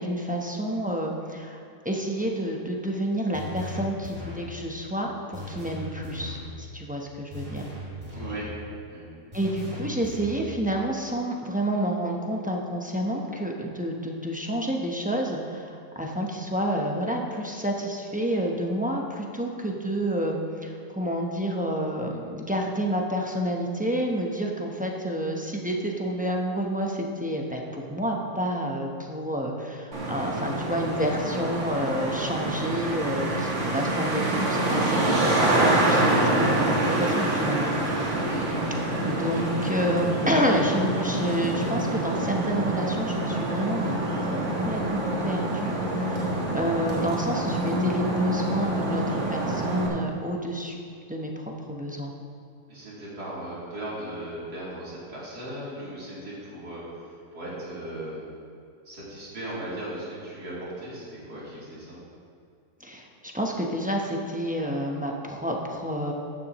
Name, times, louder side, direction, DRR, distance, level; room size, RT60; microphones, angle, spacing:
voice 1, 0.0-7.6 9.3-38.1 39.0-44.0 44.2-50.8 51.1-52.1 62.8-66.1, equal, 10° right, 0 dB, 0.6 m, -29 dB
sound 1, 3.3-4.5 5.3-6.5 7.3-8.5 9.3-10.5, left 1 dB, 25° right, 2.8 m, -38 dB
voice 2, 8.1-8.5 8.9-9.1 38.2-38.7 52.7-57.0 57.3-58.2 58.9-62.0, right 1 dB, 75° right, -8 dB, 3.8 m, -37 dB
Traffic noise roadway noise, 29.9-49.9, right 1 dB, 45° right, 1.9 m, -26 dB
14.0 x 10.0 x 3.1 m, 2.4 s
omnidirectional pair, 1.7 m